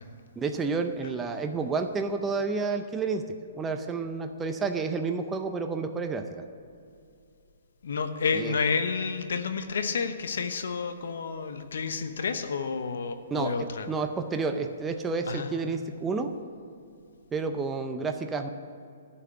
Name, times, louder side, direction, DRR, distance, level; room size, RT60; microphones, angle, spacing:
voice 1, 0.4-6.3 8.3-8.6 13.3-13.5 13.9-16.3 17.3-18.5, right 4 dB, 15° right, 6 dB, 0.6 m, -30 dB
voice 2, 7.8-13.9 15.2-15.8, left 5 dB, 75° left, 8 dB, 1.0 m, -30 dB
11.5 x 5.9 x 8.5 m, 2.5 s
hypercardioid pair, 140°, 0 cm